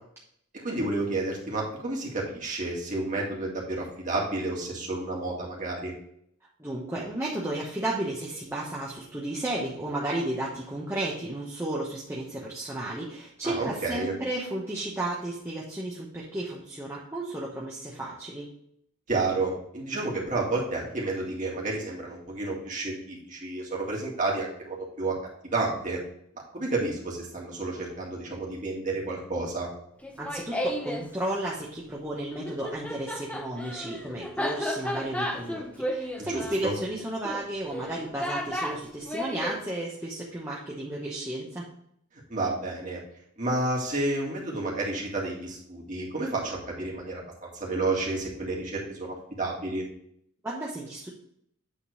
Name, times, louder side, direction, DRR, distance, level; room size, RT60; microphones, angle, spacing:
voice 1, 0.5-5.9 13.4-14.1 19.1-25.1 25.5-26.0 26.5-29.7 36.2-36.7 42.3-43.0 43.4-49.8, right 2 dB, 35° right, -2 dB, 2.1 m, -30 dB
voice 2, 6.6-18.5 30.2-41.7 50.4-51.1, right 1 dB, 10° right, -5 dB, 1.0 m, -33 dB
Laughter, 30.0-31.1 32.3-39.6, equal, 5° left, 0.6 m, -33 dB
8.7 x 3.8 x 5.0 m, 0.69 s
head